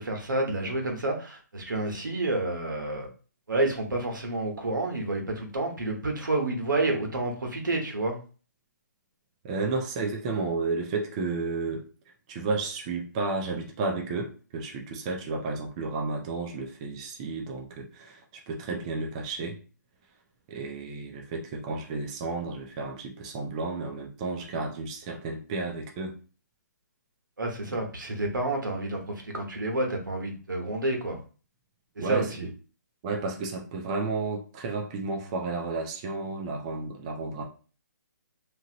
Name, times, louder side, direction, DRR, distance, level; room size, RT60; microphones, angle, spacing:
voice 1, 0.0-3.1 3.5-8.2 27.4-31.2 32.0-32.5, right 2 dB, 90° right, 2 dB, 1.1 m, -29 dB
voice 2, 9.4-11.9 12.3-19.6 20.5-26.2 27.7-27.8 32.0-32.5 33.0-37.4, right 3 dB, 20° right, 1 dB, 0.4 m, -32 dB
2.8 x 2.5 x 2.9 m, 0.37 s
hypercardioid pair, 160°, 10 cm